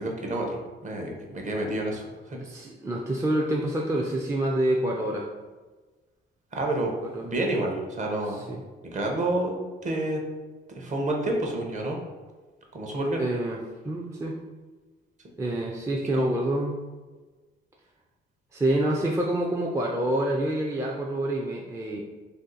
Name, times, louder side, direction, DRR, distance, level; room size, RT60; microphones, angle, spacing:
voice 1, 0.0-2.4 6.5-6.9 7.2-8.4 8.9-9.5 9.8-10.2 10.7-12.0 12.7-13.2 16.1-16.3, right 1 dB, 40° right, 1 dB, 0.7 m, -29 dB
voice 2, 2.4-5.3 7.0-7.3 8.3-8.6 13.2-13.6 13.8-14.4 15.4-16.8 18.5-22.0, right 1 dB, 15° right, -2 dB, 0.4 m, -27 dB
2.6 x 2.4 x 3.8 m, 1.3 s
cardioid pair, 90°, 20 cm